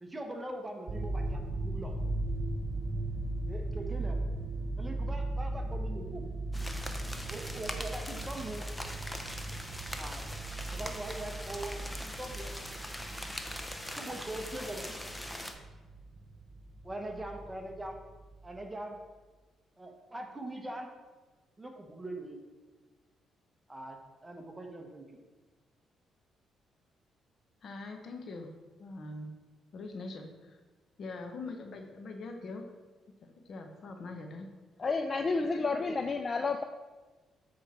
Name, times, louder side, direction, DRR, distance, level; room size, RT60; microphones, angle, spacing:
voice 1, 0.0-1.9 3.5-4.2 4.8-6.3 7.3-8.7 9.9-10.3 10.7-12.5 13.9-15.0 16.8-18.0 18.4-19.0 19.8-20.9 21.6-22.4 23.7-25.2, right 1 dB, 15° right, 3 dB, 1.1 m, -42 dB
sound 1, 0.9-17.9 18.2-18.5, right 2 dB, 45° right, 1.0 m, -38 dB
sound 2, 6.5-15.5, left 1 dB, 10° left, 0.7 m, -42 dB
voice 2, 27.6-28.5 28.8-29.3 29.7-30.5 31.0-32.6 33.2-34.5, left 3 dB, 55° left, 4 dB, 1.0 m, -43 dB
voice 3, 34.8-36.6, left 4 dB, 35° left, 6 dB, 0.4 m, -30 dB
7.5 x 4.4 x 4.3 m, 1.3 s
cardioid pair, 90°, 0 cm